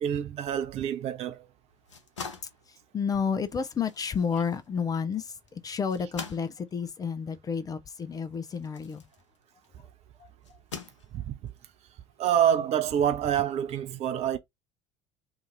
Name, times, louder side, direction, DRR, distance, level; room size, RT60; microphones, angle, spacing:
voice 1, 0.0-1.5 11.1-11.5 12.2-14.4, right 9 dB, 45° right, 0.7 m, -27 dB
sound 1, 1.7-9.8 10.4-11.5, left 5 dB, 80° left, 0.7 m, -45 dB
voice 2, 2.7-9.0 9.8-9.9 10.2-10.6, left 6 dB, 25° left, 0.5 m, -31 dB
2.8 x 2.5 x 3.8 m
figure-of-eight pair, 65°, 15 cm